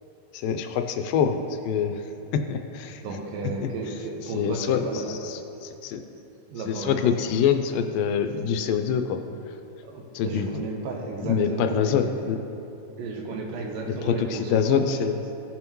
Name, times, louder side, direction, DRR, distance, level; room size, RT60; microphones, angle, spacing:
voice 1, 0.3-1.4 1.7-2.0 2.3-3.0 3.6-3.7 4.3-6.0 6.7-9.2 10.1-10.6 11.2-12.4 14.0-15.2, left 7 dB, 85° left, 7 dB, 2.2 m, -25 dB
voice 2, 3.0-5.2 6.5-7.1 9.8-12.1 13.0-14.9, right 3 dB, 80° right, 1 dB, 2.5 m, -33 dB
16.5 x 5.7 x 3.0 m, 2.9 s
omnidirectional pair, 4.0 m